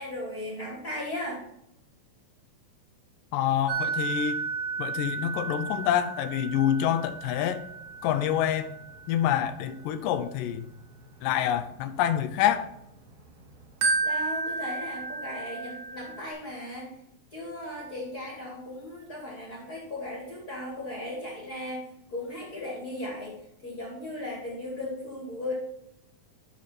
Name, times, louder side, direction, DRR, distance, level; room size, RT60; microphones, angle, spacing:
voice 1, 0.0-1.4 14.0-16.9 17.3-23.4 23.6-25.5, left 1 dB, 30° left, 2.3 m, -37 dB
voice 2, 3.3-4.4 4.8-7.6 8.0-8.8 9.1-10.7 11.2-12.7, left 10 dB, 75° left, 2.2 m, -27 dB
sound 1, 3.7-13.1 13.5-16.3, right 4 dB, 65° right, 2.0 m, -33 dB
11.5 x 4.3 x 4.3 m
omnidirectional pair, 4.2 m